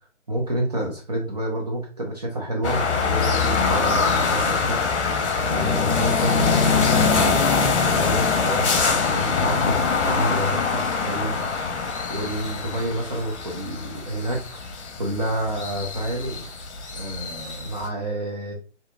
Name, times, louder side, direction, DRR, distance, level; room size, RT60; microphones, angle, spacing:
voice 1, 0.3-4.8 5.4-7.4 7.9-9.8 10.0-11.4 12.1-14.4 15.0-16.5 16.9-18.5, right 1 dB, 35° right, -1 dB, 0.6 m, -29 dB
sound 1, 2.6-17.9, left 5 dB, 65° left, 0.8 m, -23 dB
3.9 x 2.8 x 2.2 m, 0.36 s
hypercardioid pair, 160°, 37 cm